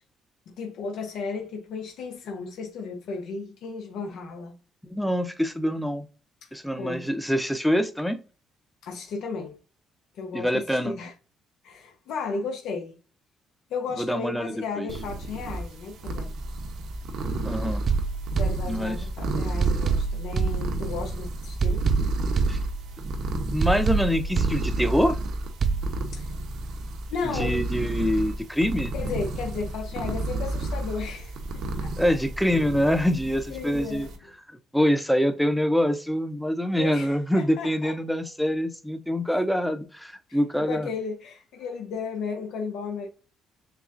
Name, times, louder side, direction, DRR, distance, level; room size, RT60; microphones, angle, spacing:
voice 1, 0.5-4.5 6.4-6.5 6.8-7.1 8.8-9.6 10.1-11.1 11.6-13.0 13.7-16.3 18.4-21.8 26.1-26.3 27.1-27.6 28.9-31.9 33.5-34.1 36.7-37.9 40.3-43.1, left 5 dB, 80° left, 1.0 m, -34 dB
voice 2, 4.9-6.1 6.5-8.2 10.3-10.9 14.0-14.9 17.4-17.8 18.7-19.0 22.5-22.6 23.3-25.2 27.3-28.9 32.0-34.1 34.7-40.9, equal, ahead, 0.7 m, -25 dB
sound 1, 14.9-34.2, right 2 dB, 75° right, 0.9 m, -32 dB
sound 2, 17.9-19.2 19.6-21.2 21.6-23.2 23.6-25.2 25.6-25.9, right 5 dB, 40° right, 0.4 m, -27 dB
6.9 x 2.3 x 2.6 m
cardioid pair, 105°, 0 cm